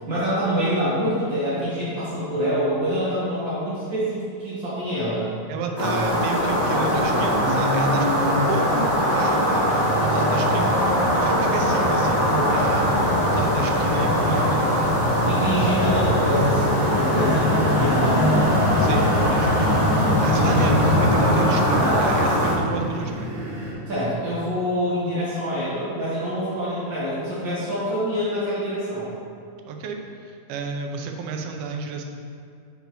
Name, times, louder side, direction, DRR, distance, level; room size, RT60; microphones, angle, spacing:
voice 1, 0.1-5.3 15.3-19.0 21.8-22.1 23.9-29.1, equal, 70° right, -10 dB, 1.1 m, -26 dB
voice 2, 5.5-12.9 13.2-14.8 18.8-23.3 29.7-32.0, right 4 dB, 90° right, 3 dB, 2.5 m, -31 dB
sound 1, 5.8-22.5, equal, 40° left, 0.9 m, -22 dB
sound 2, 10.5-23.6 23.9-24.0, left 1 dB, 80° left, 2.0 m, -26 dB
sound 3, 13.8-23.7, equal, 55° right, 2.5 m, -29 dB
8.1 x 5.3 x 3.0 m, 2.3 s
omnidirectional pair, 4.2 m